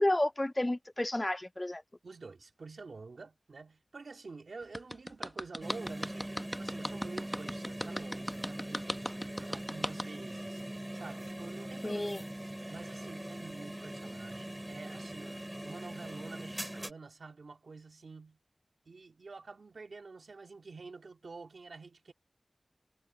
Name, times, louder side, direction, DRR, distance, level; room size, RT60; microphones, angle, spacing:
voice 1, 0.0-1.8 11.8-12.2, left 1 dB, 25° left, 0.4 m, -31 dB
voice 2, 2.0-10.6 10.9-12.1 12.7-18.4 18.9-22.1, right 4 dB, 90° right, 2.6 m, -48 dB
sound 1, 4.7-10.0, equal, 5° left, 1.0 m, -36 dB
sound 2, 5.6-16.9, right 1 dB, 15° right, 2.8 m, -42 dB
wide cardioid pair, 50°, 0 cm